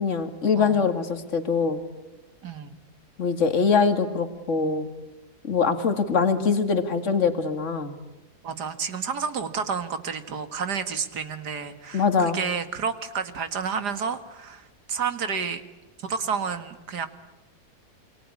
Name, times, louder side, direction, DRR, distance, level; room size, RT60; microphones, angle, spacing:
voice 1, 0.0-1.8 3.2-4.9 5.4-8.0 11.9-12.4, left 5 dB, 50° left, 8 dB, 2.4 m, -23 dB
voice 2, 2.4-2.7 8.4-15.6 16.0-17.1, right 6 dB, 90° right, 10 dB, 2.4 m, -30 dB
28.0 x 24.0 x 8.5 m, 1.0 s
omnidirectional pair, 1.7 m